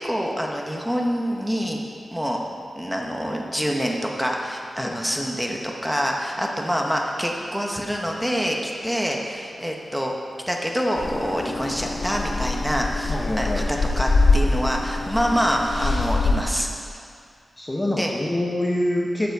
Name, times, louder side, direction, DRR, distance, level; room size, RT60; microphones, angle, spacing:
voice 1, 0.0-1.8 2.1-2.4 2.8-10.1 10.5-16.7 17.9-18.1, equal, 5° right, 0 dB, 1.1 m, -26 dB
sound 1, 11.0-16.4, left 3 dB, 55° left, 0.8 m, -24 dB
voice 2, 13.1-13.7 17.6-19.3, left 1 dB, 15° left, -2 dB, 0.8 m, -25 dB
13.5 x 7.6 x 4.7 m, 2.3 s
wide cardioid pair, 155°, 0 cm